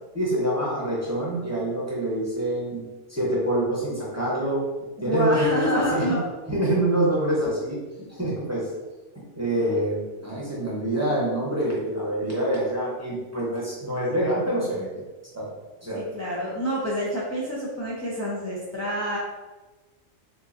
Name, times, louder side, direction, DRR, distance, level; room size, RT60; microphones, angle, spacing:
voice 1, 0.1-2.8 3.1-4.6 5.0-6.1 6.5-7.8 8.2-8.7 9.3-14.9 15.3-15.5 15.8-16.0, right 1 dB, 15° right, -6 dB, 0.7 m, -26 dB
voice 2, 5.0-6.2 15.9-19.2, equal, 25° left, -7 dB, 0.4 m, -27 dB
4.4 x 2.4 x 2.5 m, 1.2 s
omnidirectional pair, 1.2 m